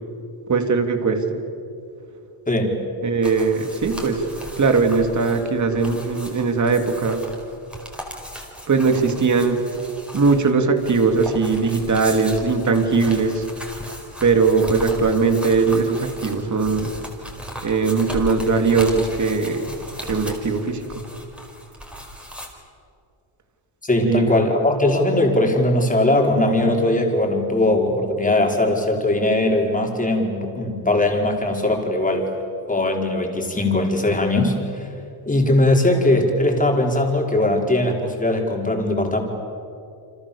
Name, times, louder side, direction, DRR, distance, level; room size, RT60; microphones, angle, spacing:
voice 1, 0.5-1.4 3.0-4.2 4.6-7.2 8.7-9.6 10.1-13.4 14.2-16.9 17.6-19.8 20.1-21.0 24.0-24.4, right 4 dB, 35° right, 6 dB, 3.2 m, -20 dB
sound 1, 3.2-22.5, equal, ahead, 4.9 m, -37 dB
voice 2, 23.8-32.3 32.7-34.9 35.3-39.2, left 1 dB, 15° left, 1 dB, 5.1 m, -20 dB
29.5 x 26.0 x 7.2 m, 2.6 s
cardioid pair, 100°, 48 cm